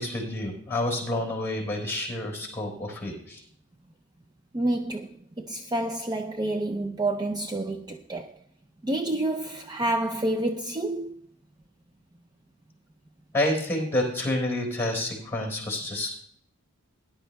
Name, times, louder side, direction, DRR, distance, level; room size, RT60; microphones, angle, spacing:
voice 1, 0.0-3.4 13.3-16.1, left 1 dB, 10° left, 4.0 m, -29 dB
voice 2, 4.5-8.3 8.8-11.1, right 1 dB, 20° right, 0.4 m, -29 dB
19.0 x 11.0 x 2.2 m
head